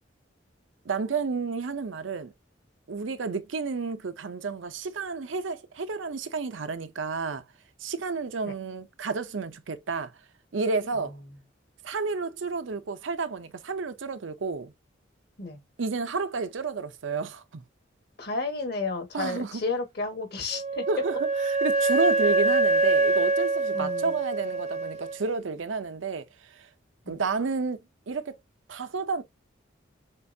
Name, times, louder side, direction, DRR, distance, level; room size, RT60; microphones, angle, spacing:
voice 1, 0.9-2.3 2.9-7.4 7.8-10.1 10.5-11.1 11.8-14.7 15.8-17.6 19.1-19.6 20.9-21.2 21.5-26.2 26.6-26.7 27.1-27.8 28.1-28.4 28.7-29.2, right 4 dB, 80° right, 0.6 m, -31 dB
voice 2, 18.2-20.8 23.7-24.2 27.0-27.2, left 3 dB, 55° left, 1.4 m, -32 dB
Wind instrument woodwind instrument, 20.5-25.2, right 3 dB, 35° right, 0.6 m, -25 dB
6.6 x 2.4 x 2.7 m
head